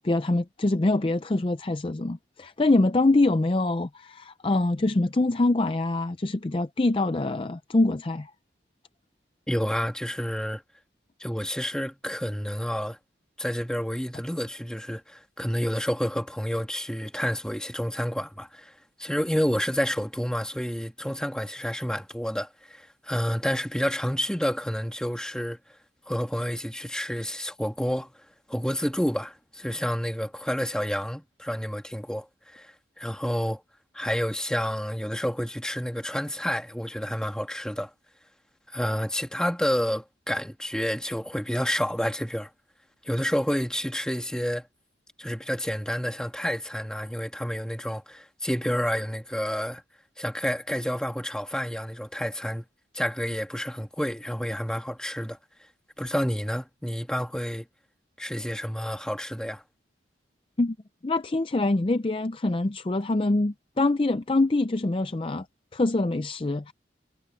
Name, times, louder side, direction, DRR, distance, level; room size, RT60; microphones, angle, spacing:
voice 1, 0.0-8.3 60.6-60.8 61.0-65.5 65.7-66.7, left 2 dB, 30° left, 0.5 m, -24 dB
voice 2, 9.5-10.6 11.2-13.0 13.4-18.7 19.0-25.6 26.1-28.1 28.5-33.6 33.9-37.9 38.7-42.5 43.0-44.7 45.2-49.8 50.2-52.7 52.9-55.4 56.0-57.7 58.2-59.6, equal, 5° left, 1.9 m, -29 dB
head